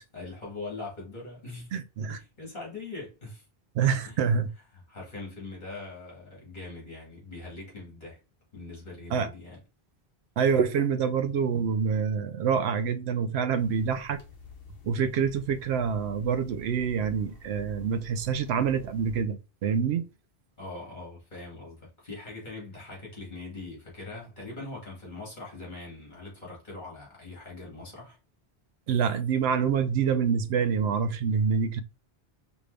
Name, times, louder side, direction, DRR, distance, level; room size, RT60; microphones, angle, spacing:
voice 1, 0.1-1.7 2.1-3.4 4.0-4.2 4.7-8.2 8.5-9.6 20.6-28.2, left 3 dB, 45° left, 2.3 m, -42 dB
voice 2, 1.7-2.2 3.7-4.5 9.1-9.3 10.4-14.2 14.8-20.1 28.9-31.8, right 6 dB, 85° right, 0.8 m, -26 dB
sound 1, 13.6-19.2, right 1 dB, 65° left, 1.2 m, -49 dB
5.2 x 2.6 x 3.3 m
omnidirectional pair, 1.1 m